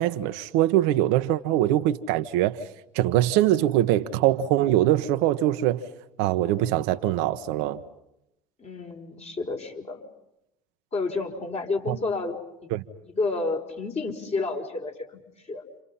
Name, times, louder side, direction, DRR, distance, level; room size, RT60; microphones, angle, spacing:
voice 1, 0.0-2.6 2.9-5.8 6.2-7.8 11.9-12.0 12.7-12.8, right 13 dB, 70° right, 1.2 m, -23 dB
voice 2, 8.6-10.0 10.9-12.4 13.0-15.1 15.5-15.6, left 3 dB, 30° left, 4.7 m, -30 dB
29.5 x 27.0 x 5.7 m
hypercardioid pair, 80°, 21 cm